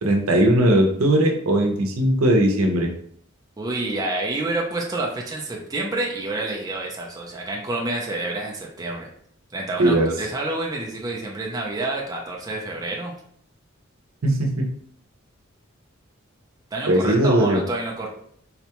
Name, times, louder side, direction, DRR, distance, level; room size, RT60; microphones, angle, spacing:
voice 1, 0.0-2.9 9.8-10.1 14.2-14.7 16.9-17.6, right 1 dB, 80° right, 2 dB, 0.7 m, -19 dB
voice 2, 3.6-9.1 9.5-13.1 16.7-18.1, right 2 dB, 15° right, -2 dB, 0.4 m, -28 dB
4.0 x 2.2 x 2.9 m, 0.64 s
head